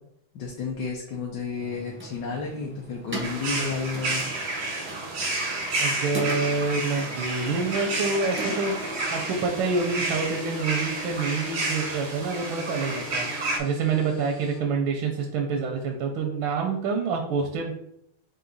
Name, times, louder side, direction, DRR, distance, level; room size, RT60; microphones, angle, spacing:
voice 1, 0.3-4.2, left 4 dB, 70° left, -1 dB, 1.2 m, -31 dB
sound 1, 1.5-10.3, right 2 dB, 15° right, 0.5 m, -41 dB
sound 2, 3.2-13.6, right 2 dB, 70° right, 0.6 m, -30 dB
voice 2, 5.8-17.7, right 4 dB, 85° right, 2 dB, 1.4 m, -27 dB
sound 3, 9.1-14.6, left 2 dB, 35° left, 0.7 m, -44 dB
4.8 x 2.7 x 3.9 m, 0.77 s
omnidirectional pair, 2.2 m